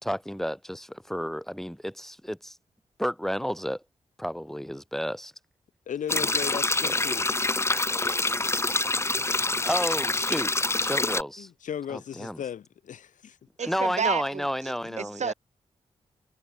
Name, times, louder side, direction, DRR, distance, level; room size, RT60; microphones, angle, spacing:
voice 1, 0.0-2.6 3.0-3.8 4.2-5.3 6.9-7.0 9.6-10.5 10.8-11.5 11.9-12.4 13.6-15.3, equal, 5° left, 3.6 m, -31 dB
voice 2, 5.9-7.4 9.1-9.6 11.4-13.4 14.8-15.1, left 9 dB, 90° left, 1.7 m, -37 dB
sound 1, 6.1-11.2, left 2 dB, 20° left, 0.8 m, -26 dB
voice 3, 13.6-15.3, right 6 dB, 65° right, 3.0 m, -31 dB
cardioid pair, 65°, 13 cm